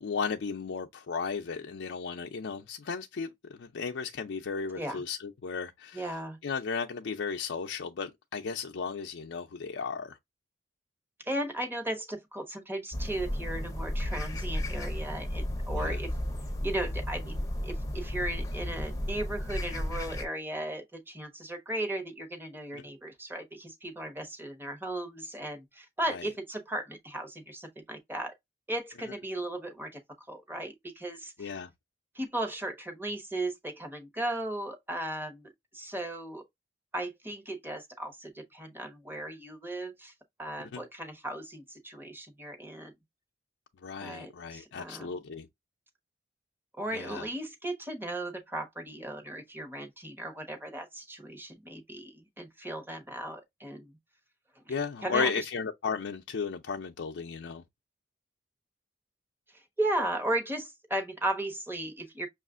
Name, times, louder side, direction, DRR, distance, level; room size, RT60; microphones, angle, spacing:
voice 1, 0.0-6.1 6.4-10.2 15.7-16.0 22.7-22.8 26.1-26.3 31.4-31.7 40.7-40.8 43.8-45.5 46.9-47.3 54.7-57.6, left 5 dB, 80° left, 0.5 m, -35 dB
voice 2, 5.9-6.4 11.2-16.1 16.6-28.3 28.7-30.0 30.3-31.5 32.1-35.5 35.7-36.4 36.9-40.1 40.4-42.9 44.0-45.1 46.8-53.9 54.6-54.7 55.0-55.4 59.5-62.3, right 1 dB, 10° right, 1.0 m, -36 dB
sound 1, 12.9-20.3, left 1 dB, 20° left, 0.7 m, -33 dB
6.2 x 2.4 x 2.4 m
head